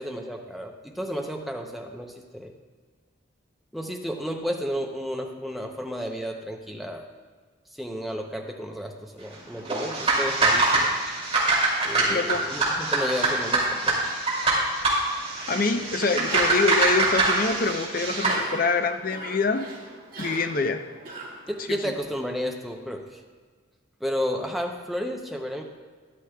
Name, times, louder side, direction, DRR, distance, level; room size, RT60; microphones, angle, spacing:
voice 1, 0.0-2.5 3.7-7.0 7.7-10.9 11.8-14.0 21.5-23.2 24.0-25.6, equal, ahead, 2 dB, 0.6 m, -32 dB
sound 1, 9.6-18.4, right 2 dB, 30° right, 2.7 m, -24 dB
voice 2, 12.1-12.4 15.5-19.7 20.2-20.8 21.7-21.9, left 3 dB, 45° left, 8 dB, 0.5 m, -25 dB
Cough, 16.2-22.0, right 2 dB, 45° right, 1.3 m, -41 dB
13.0 x 11.0 x 2.3 m, 1.5 s
head